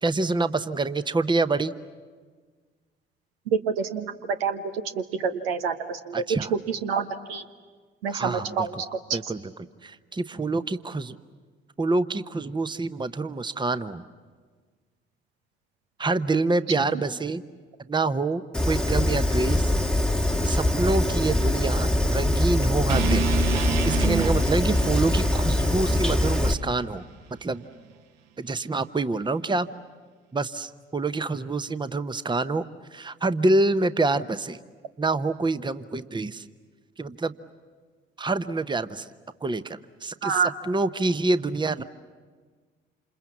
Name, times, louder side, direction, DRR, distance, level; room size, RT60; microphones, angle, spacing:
voice 1, 0.0-1.7 6.1-6.5 8.1-8.8 9.1-9.5 9.8-11.2 11.8-14.0 16.0-17.4 17.9-19.7 20.4-23.3 23.8-27.0 27.4-27.6 28.4-29.7 30.3-32.6 32.9-34.6 35.0-36.4 37.0-37.3 38.2-39.1 39.4-41.8, right 3 dB, 15° right, 13 dB, 0.9 m, -26 dB
voice 2, 3.5-4.1 4.4-4.6 5.2-6.1 6.8-7.4 8.0-9.0 40.2-40.5, right 6 dB, 80° right, 7 dB, 1.2 m, -27 dB
Fire, 18.5-26.5, left 1 dB, 5° left, 1.4 m, -23 dB
sound 1, 22.9-27.0, right 8 dB, 60° right, 1.0 m, -31 dB
28.0 x 28.0 x 7.3 m, 1.5 s
figure-of-eight pair, 45°, 30 cm